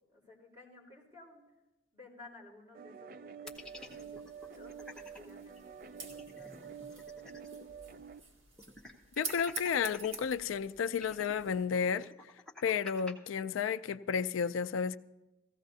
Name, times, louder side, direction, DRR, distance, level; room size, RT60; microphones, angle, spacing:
voice 1, 0.0-1.4 1.9-6.7, left 2 dB, 25° right, 3.6 m, -56 dB
sound 1, 2.7-8.2, right 7 dB, 45° right, 0.4 m, -48 dB
sound 2, 3.5-5.2 5.6-5.7 5.9-7.7 8.0-8.1 8.6-10.2 10.8-13.1, left 2 dB, 5° left, 1.0 m, -49 dB
sound 3, 3.5-11.6, right 4 dB, 85° right, 2.2 m, -49 dB
voice 2, 9.2-12.1 12.6-15.0, left 6 dB, 90° left, 0.4 m, -32 dB
17.5 x 15.0 x 2.7 m
head